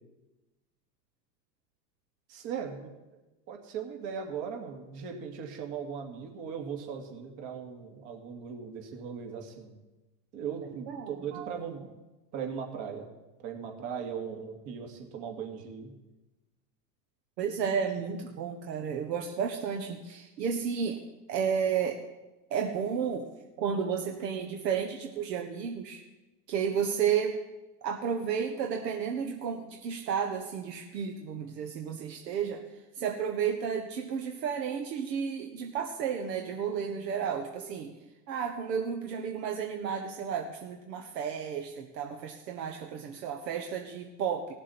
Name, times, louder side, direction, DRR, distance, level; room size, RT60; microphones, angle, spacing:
voice 1, 2.3-2.9 3.5-9.8 10.3-11.9 12.3-13.1 13.4-15.9, right 7 dB, 50° right, 2 dB, 2.5 m, -38 dB
voice 2, 10.9-11.6 17.4-21.0 21.3-22.0 22.5-23.3 23.6-26.0 26.5-27.4 27.8-32.6 32.9-37.9 38.3-44.5, right 7 dB, 80° right, 3 dB, 1.3 m, -32 dB
17.5 x 7.3 x 4.3 m, 1.1 s
hypercardioid pair, 115°, 49 cm